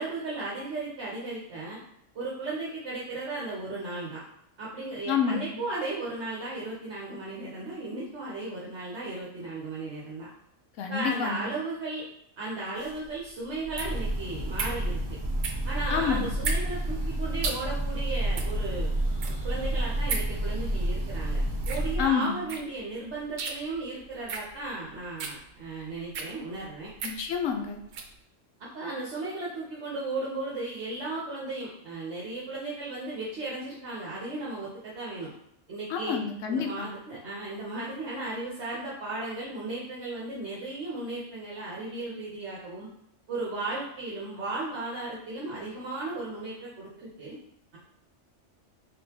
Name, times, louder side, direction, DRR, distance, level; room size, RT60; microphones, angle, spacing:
voice 1, 0.0-1.8 2.1-4.2 4.6-10.3 10.9-12.0 12.4-15.0 15.6-18.9 19.4-21.4 21.7-26.9 28.6-35.3 35.7-36.2 36.5-42.9 43.3-47.4, right 2 dB, 65° right, -6 dB, 1.1 m, -35 dB
voice 2, 5.1-5.6 10.8-11.5 15.9-16.3 22.0-22.5 27.0-27.8 35.9-36.9, left 7 dB, 85° left, 4 dB, 1.0 m, -28 dB
sound 1, 12.8-28.2, right 5 dB, 90° right, 1.0 m, -38 dB
Breathing / Bird, 13.6-22.2, right 1 dB, 40° right, 0.3 m, -30 dB
3.8 x 3.7 x 2.9 m, 0.75 s
omnidirectional pair, 1.3 m